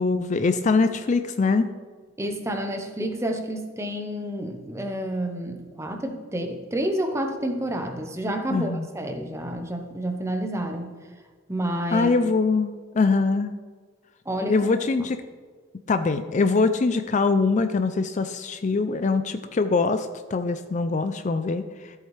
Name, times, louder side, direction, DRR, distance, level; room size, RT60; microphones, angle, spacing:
voice 1, 0.0-1.7 8.5-8.9 11.9-13.5 14.5-15.2 15.9-21.9, left 4 dB, 35° left, 10 dB, 0.4 m, -23 dB
voice 2, 2.2-10.9 11.5-12.1 14.3-14.9, right 1 dB, 15° right, 5 dB, 0.9 m, -29 dB
13.5 x 8.1 x 3.2 m, 1.5 s
head